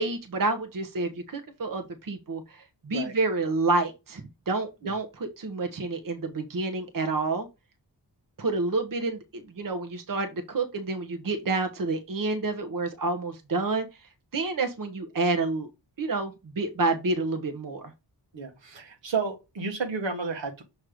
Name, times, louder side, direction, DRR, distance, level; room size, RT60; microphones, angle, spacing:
voice 1, 0.0-7.5 8.4-13.8 14.3-15.7 16.0-17.9, right 3 dB, 50° right, 1.0 m, -29 dB
voice 2, 18.3-20.6, right 4 dB, 80° right, 1.4 m, -32 dB
6.3 x 3.1 x 5.0 m
wide cardioid pair, 80°, 43 cm